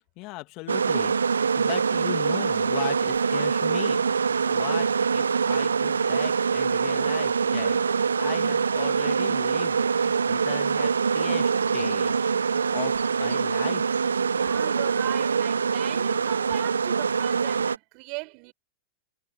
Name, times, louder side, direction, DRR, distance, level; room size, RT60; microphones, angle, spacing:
voice 1, 0.2-4.0 4.5-4.9 5.1-12.9 13.2-13.9, left 23 dB, 45° left, 2.1 m, -38 dB
sound 1, 0.7-17.8, right 6 dB, 80° right, 0.8 m, -24 dB
voice 2, 14.4-18.5, right 32 dB, 50° right, 5.9 m, -38 dB
figure-of-eight pair, 95°, 0 cm